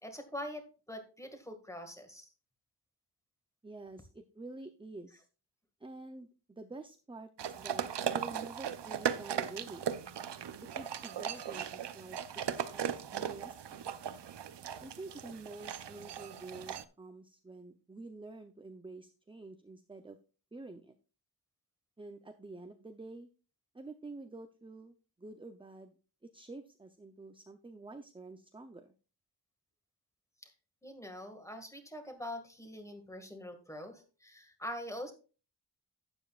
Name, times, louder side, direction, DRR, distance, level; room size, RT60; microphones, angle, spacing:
voice 1, 0.0-2.3 30.4-30.5 30.8-35.1, left 1 dB, 5° left, 6 dB, 1.9 m, -44 dB
voice 2, 3.6-5.3 5.8-9.9 10.6-12.2 12.5-14.0 14.8-20.2 20.5-20.9 22.0-23.3 23.7-25.9 26.2-28.9, right 2 dB, 10° right, 8 dB, 0.6 m, -48 dB
sound 1, 7.4-16.8, right 8 dB, 75° right, 0.8 m, -38 dB
12.0 x 8.9 x 2.4 m, 0.34 s
wide cardioid pair, 130°, 42 cm